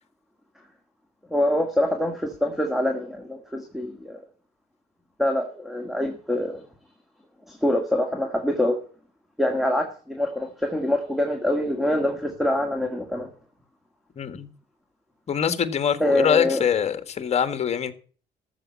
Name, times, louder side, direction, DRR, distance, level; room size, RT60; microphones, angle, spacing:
voice 1, 1.3-4.2 5.2-6.6 7.5-8.8 9.4-13.3 16.0-16.6, left 1 dB, ahead, 1.8 m, -25 dB
voice 2, 14.2-14.5 15.3-17.9, left 8 dB, 40° left, 1.6 m, -24 dB
13.5 x 7.3 x 8.3 m
cardioid pair, 110°, 17 cm